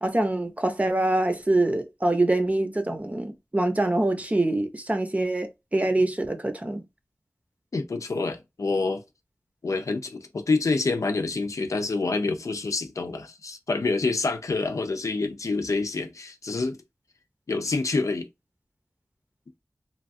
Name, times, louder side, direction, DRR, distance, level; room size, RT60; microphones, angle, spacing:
voice 1, 0.0-6.8, right 2 dB, 25° right, 0.7 m, -25 dB
voice 2, 7.7-9.0 9.6-16.8 17.5-18.3, left 3 dB, 80° left, 0.5 m, -27 dB
3.1 x 2.3 x 2.5 m
wide cardioid pair, 50°, 5 cm